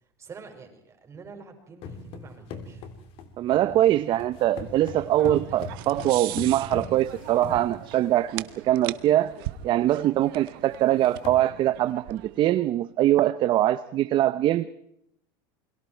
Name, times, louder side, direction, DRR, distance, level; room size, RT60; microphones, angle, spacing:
voice 1, 0.2-2.9, right 5 dB, 25° right, 4 dB, 5.8 m, -46 dB
sound 1, 1.8-8.3 9.0-9.1 9.4-9.6 10.0-10.1 10.7-10.8 11.0-11.4, left 4 dB, 50° left, 3.3 m, -40 dB
voice 2, 3.4-9.3 9.6-14.7, right 13 dB, 40° right, 13 dB, 0.8 m, -23 dB
sound 2, 4.1-12.7, right 16 dB, 75° right, 1.1 m, -41 dB
29.5 x 22.5 x 4.6 m, 0.75 s
supercardioid pair, 135°, 12 cm